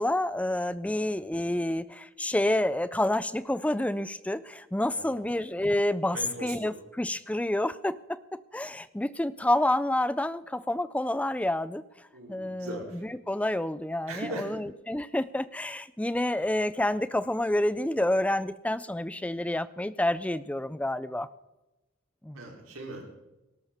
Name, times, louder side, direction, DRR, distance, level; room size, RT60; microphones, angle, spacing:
voice 1, 0.0-8.2 8.5-11.8 12.3-21.3 22.2-22.4, left 1 dB, 5° left, 16 dB, 0.4 m, -28 dB
voice 2, 6.1-6.7 12.1-12.9 14.1-14.6 22.3-23.2, right 1 dB, 75° right, 0 dB, 3.4 m, -39 dB
18.0 x 13.0 x 3.6 m, 1.0 s
head